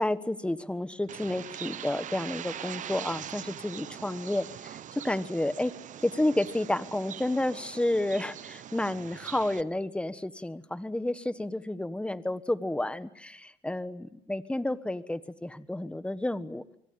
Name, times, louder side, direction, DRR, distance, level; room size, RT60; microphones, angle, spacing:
voice 1, 0.0-5.7 6.0-16.6, left 1 dB, 5° left, 13 dB, 1.4 m, -31 dB
Bird, 1.1-9.6, right 10 dB, 50° right, 1.0 m, -42 dB
26.0 x 23.5 x 8.9 m, 0.80 s
supercardioid pair, 90°, 16 cm